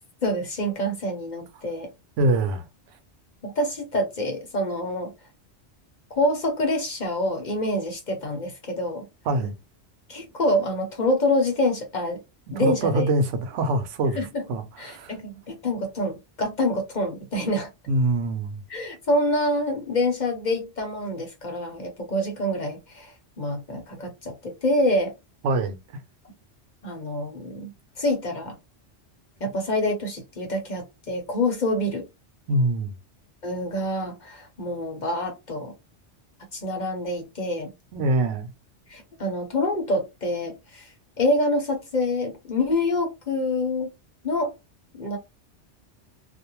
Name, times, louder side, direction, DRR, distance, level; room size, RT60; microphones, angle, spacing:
voice 1, 0.2-1.9 3.4-5.1 6.1-9.0 10.1-12.2 12.5-13.0 14.1-14.4 14.8-17.7 18.7-25.1 26.8-27.7 28.0-28.6 29.4-32.0 33.4-35.7 36.5-37.7 38.9-43.9 44.2-44.5 44.9-45.2, left 1 dB, 45° left, 0.8 m, -26 dB
voice 2, 2.2-2.6 9.3-9.5 12.6-15.1 17.9-18.6 25.4-25.8 32.5-32.9 37.9-38.5, right 2 dB, 90° right, 0.9 m, -24 dB
2.5 x 2.1 x 2.9 m
omnidirectional pair, 1.2 m